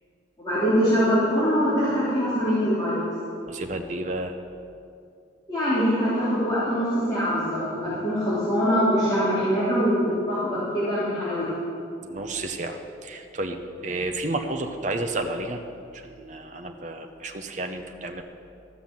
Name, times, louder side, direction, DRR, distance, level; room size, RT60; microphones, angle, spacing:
voice 1, 0.4-3.0 5.5-11.4, equal, 20° left, -14 dB, 3.2 m, -23 dB
voice 2, 3.5-4.4 12.0-13.6 13.8-15.6 15.9-18.2, right 2 dB, 40° right, 4 dB, 0.7 m, -31 dB
13.5 x 6.0 x 7.4 m, 2.5 s
head